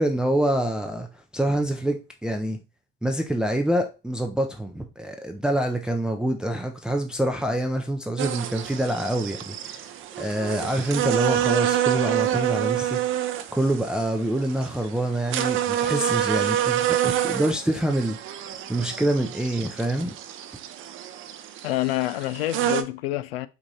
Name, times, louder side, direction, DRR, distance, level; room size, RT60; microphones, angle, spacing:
voice 1, 0.0-2.6 3.0-9.9 10.2-13.0 13.5-18.2 18.5-20.1, right 1 dB, 5° right, 0.5 m, -26 dB
sound 1, 8.2-22.8, right 11 dB, 45° right, 0.6 m, -27 dB
voice 2, 21.6-23.5, left 15 dB, 80° left, 0.5 m, -27 dB
4.8 x 2.5 x 4.1 m
hypercardioid pair, 90°, 29 cm